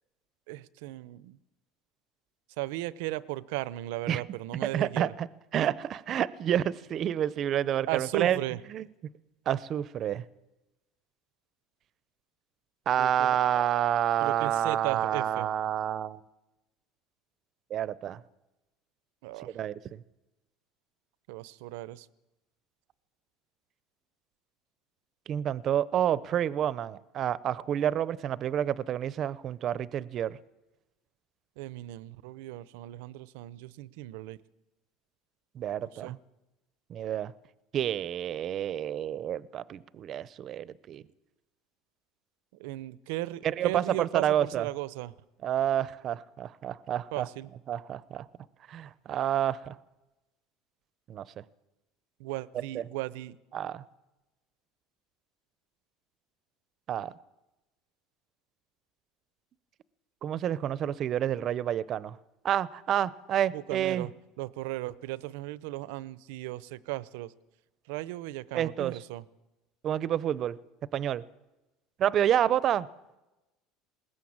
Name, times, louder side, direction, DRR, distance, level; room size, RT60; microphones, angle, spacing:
voice 1, 0.5-1.4 2.6-5.1 7.9-8.6 13.0-13.6 14.2-15.5 19.2-19.6 21.3-22.1 31.6-34.4 35.8-36.2 42.6-45.1 47.1-47.5 52.2-53.4 63.5-64.1 64.4-67.3 67.9-69.2, right 17 dB, 85° right, 0.8 m, -36 dB
voice 2, 4.7-5.3 5.5-8.4 8.7-8.9 9.5-10.2 12.9-16.2 17.7-18.2 19.4-19.8 25.3-30.4 35.5-36.2 36.9-37.3 37.7-41.0 43.4-44.7 45.4-47.3 47.7-48.3 48.7-49.8 51.1-51.3 52.7-52.8 53.5-53.8 56.9-57.1 60.2-62.2 62.4-64.1 68.5-69.0 69.8-70.6 70.9-71.2 72.0-72.9, right 10 dB, 35° right, 0.7 m, -29 dB
20.5 x 18.5 x 8.8 m
cardioid pair, 155°, 0 cm